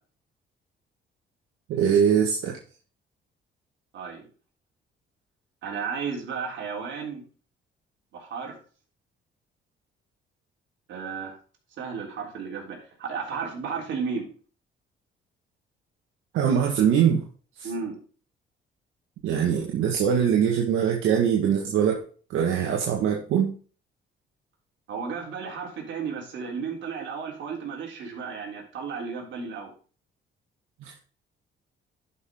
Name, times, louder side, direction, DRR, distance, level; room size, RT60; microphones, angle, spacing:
voice 1, 1.7-2.6 16.3-17.2 17.6-17.7 19.2-23.5 30.8-30.9, right 8 dB, 85° right, 0 dB, 1.5 m, -22 dB
voice 2, 3.9-4.3 5.6-7.2 8.1-8.6 10.9-11.3 11.8-14.3 17.6-18.0 24.9-29.7, right 5 dB, 70° right, -1 dB, 3.6 m, -33 dB
11.0 x 5.8 x 3.6 m, 0.39 s
cardioid pair, 90°, 20 cm